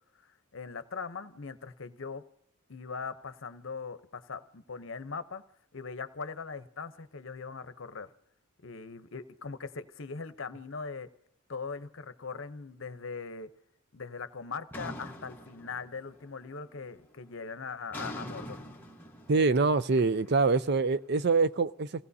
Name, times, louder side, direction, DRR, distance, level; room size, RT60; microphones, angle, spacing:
voice 1, 0.5-2.2 2.7-5.4 5.7-8.1 8.6-11.1 11.5-13.5 13.9-18.6, left 5 dB, 65° left, 0.8 m, -40 dB
sound 1, 14.7-16.3 16.6-17.0 17.9-21.0, equal, 10° left, 1.3 m, -44 dB
voice 2, 19.3-22.1, right 4 dB, 50° right, 0.5 m, -25 dB
27.5 x 17.5 x 2.7 m
head